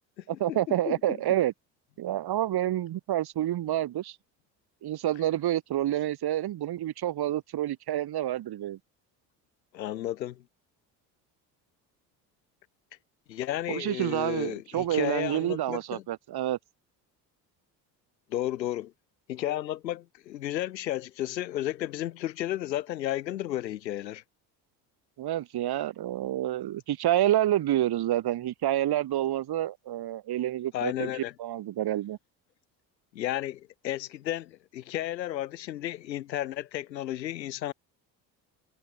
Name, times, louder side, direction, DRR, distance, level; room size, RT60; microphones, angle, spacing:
voice 1, 0.3-1.5 2.0-4.2 4.8-8.8 13.7-16.6 25.2-32.2, right 13 dB, 50° right, 2.2 m, -28 dB
voice 2, 0.9-1.2 9.7-10.4 13.3-16.0 18.3-18.9 19.3-24.2 30.7-31.3 33.1-37.7, left 13 dB, 85° left, 5.0 m, -33 dB
hypercardioid pair, 60°, 50 cm